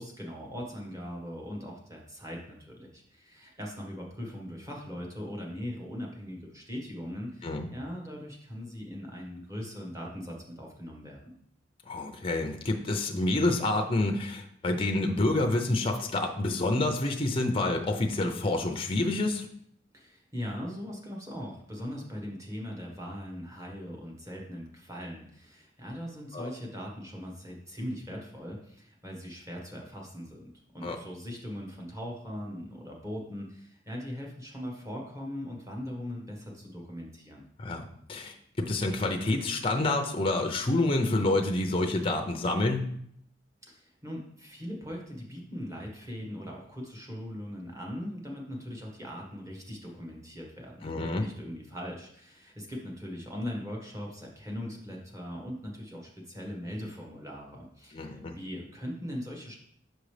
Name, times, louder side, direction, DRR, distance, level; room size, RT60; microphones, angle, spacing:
voice 1, 0.0-11.3 19.9-30.4 30.7-37.4 43.7-59.6, equal, 15° right, -1 dB, 1.3 m, -40 dB
voice 2, 11.9-19.5 26.3-26.5 30.8-31.0 37.6-37.8 38.1-42.9 50.8-51.2 57.9-58.3, left 2 dB, 30° left, 4 dB, 0.6 m, -28 dB
6.4 x 5.1 x 3.3 m, 0.68 s
head